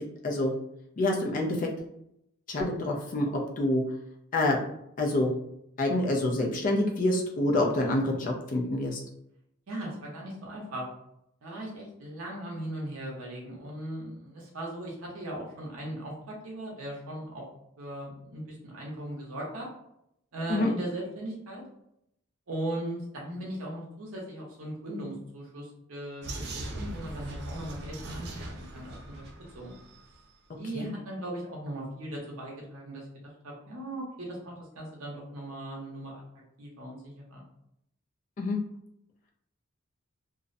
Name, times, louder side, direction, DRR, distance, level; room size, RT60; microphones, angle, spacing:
voice 1, 1.0-1.7 2.5-3.8 4.3-4.6 5.0-5.3 5.8-9.0 20.5-20.7 30.7-30.9 38.4-38.6, left 1 dB, 40° left, 1 dB, 0.4 m, -27 dB
voice 2, 9.7-10.9 11.4-17.4 17.8-19.7 20.3-21.6 22.5-29.3 29.5-29.7 30.6-33.1 33.4-36.2 36.6-37.4, right 1 dB, 75° right, -3 dB, 0.7 m, -38 dB
Vehicle, 26.2-30.1, right 1 dB, 50° right, 0.4 m, -40 dB
2.4 x 2.0 x 2.5 m, 0.76 s
head